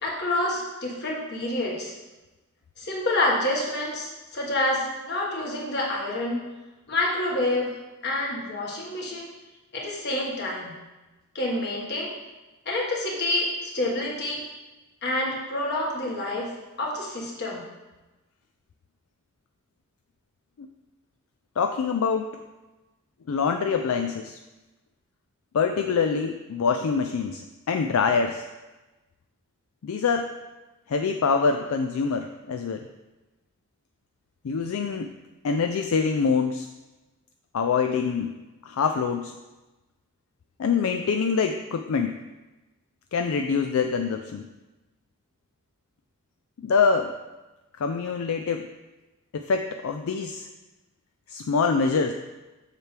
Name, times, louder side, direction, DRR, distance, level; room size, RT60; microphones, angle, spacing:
voice 1, 0.0-1.9 2.8-6.4 6.9-7.8 8.0-9.3 9.7-10.7 11.3-12.1 12.6-14.4 15.0-17.6, left 1 dB, 50° left, -3 dB, 1.5 m, -28 dB
voice 2, 21.6-22.3 23.3-24.4 25.5-28.5 29.8-30.3 30.9-32.9 34.4-35.1 35.4-36.7 37.5-38.4 38.6-39.3 40.6-42.2 43.1-44.5 46.6-47.1 47.8-48.7 49.3-50.5 51.3-52.1, left 5 dB, 70° left, 6 dB, 0.4 m, -25 dB
7.4 x 6.6 x 3.3 m, 1.1 s
head